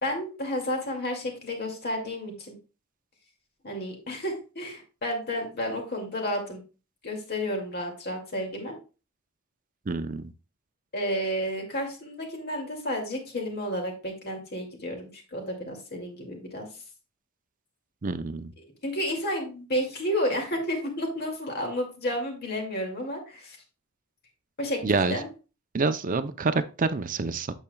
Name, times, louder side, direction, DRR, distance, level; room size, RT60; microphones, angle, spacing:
voice 1, 0.0-2.5 3.6-6.6 7.0-8.8 10.9-16.7 18.6-23.6 24.6-25.3, equal, 50° left, 2 dB, 2.3 m, -31 dB
voice 2, 9.9-10.3 18.0-18.5 24.8-25.2 25.7-27.5, right 3 dB, 40° right, 12 dB, 0.6 m, -27 dB
8.7 x 7.3 x 2.3 m, 0.33 s
head